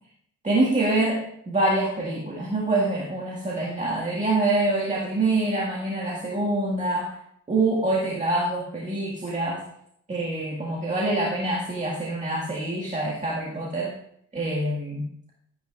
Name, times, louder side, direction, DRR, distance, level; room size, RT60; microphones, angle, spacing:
voice 1, 0.4-7.1 7.5-9.6 10.1-13.9 14.3-15.0, right 2 dB, 25° right, -3 dB, 1.9 m, -25 dB
13.0 x 9.4 x 2.5 m, 0.74 s
cardioid pair, 90°, 30 cm